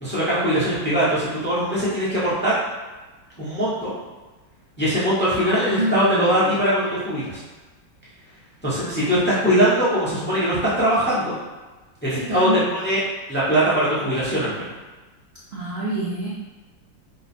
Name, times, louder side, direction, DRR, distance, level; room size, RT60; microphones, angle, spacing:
voice 1, 0.0-2.6 3.4-3.9 4.8-7.4 8.6-11.4 12.0-13.0 13.3-14.7, equal, 10° left, -10 dB, 0.7 m, -21 dB
voice 2, 5.4-6.5 8.7-9.2 9.4-9.5 12.1-12.8 15.5-16.3, right 1 dB, 60° right, -8 dB, 0.6 m, -28 dB
3.6 x 2.3 x 4.2 m, 1.2 s
omnidirectional pair, 2.1 m